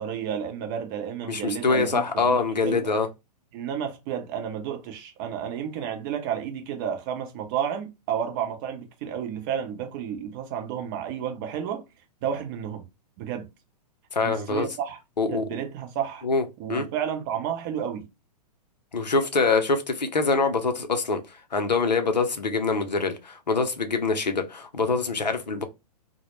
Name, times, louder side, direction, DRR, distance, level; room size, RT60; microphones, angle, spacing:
voice 1, 0.0-2.9 3.5-11.8 12.2-12.8 13.2-13.5 14.2-15.0 15.3-16.2 16.6-18.1, right 8 dB, 30° right, 0.6 m, -31 dB
voice 2, 1.3-3.1 14.1-14.7 15.2-15.5 16.2-16.4 16.7-16.9 18.9-25.6, left 4 dB, 85° left, 0.6 m, -24 dB
2.1 x 2.0 x 3.0 m
figure-of-eight pair, 115°, 21 cm